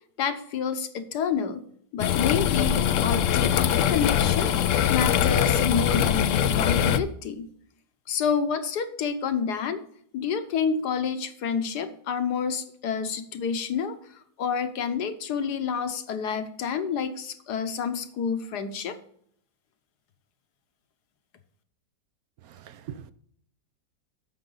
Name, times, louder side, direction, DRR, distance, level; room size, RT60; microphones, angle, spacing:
voice 1, 0.2-1.6 1.9-7.5 8.1-9.8 10.1-14.0 14.4-19.0, left 6 dB, 65° left, 1.5 m, -28 dB
sound 1, 2.0-7.0, left 9 dB, 85° left, 0.6 m, -22 dB
voice 2, 22.4-23.1, right 9 dB, 70° right, 0.9 m, -42 dB
11.0 x 7.7 x 3.9 m
omnidirectional pair, 2.0 m